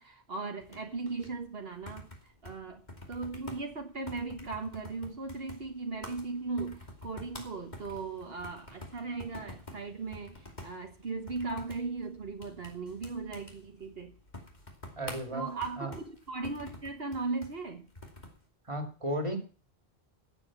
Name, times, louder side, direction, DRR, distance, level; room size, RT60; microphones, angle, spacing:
voice 1, 0.0-2.8 3.1-14.1 15.3-17.9, right 3 dB, 70° right, 4 dB, 1.6 m, -38 dB
sound 1, 0.6-18.4, left 1 dB, 45° left, 2.9 m, -49 dB
voice 2, 15.0-15.4 15.8-15.9 18.7-19.4, right 1 dB, 30° right, 6 dB, 2.6 m, -34 dB
15.5 x 7.6 x 7.3 m, 0.37 s
omnidirectional pair, 1.0 m